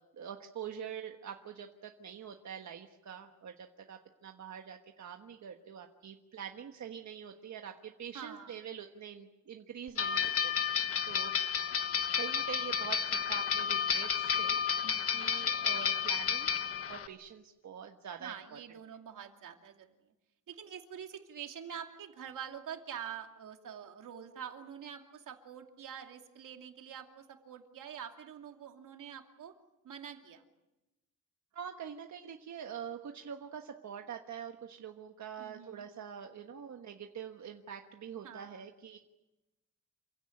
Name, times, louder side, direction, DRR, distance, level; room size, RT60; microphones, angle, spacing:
voice 1, 0.2-11.3 12.1-14.6 15.1-16.5 16.9-18.6 31.5-39.0, right 8 dB, 65° right, 4 dB, 1.4 m, -45 dB
voice 2, 8.1-8.6 14.8-15.2 18.2-19.9 20.5-29.5 29.8-30.4 35.4-35.9 38.2-38.6, right 8 dB, 85° right, 4 dB, 2.6 m, -46 dB
sound 1, 10.0-17.1, left 7 dB, 50° left, 1.2 m, -31 dB
28.0 x 16.0 x 10.0 m, 1.0 s
wide cardioid pair, 155°, 31 cm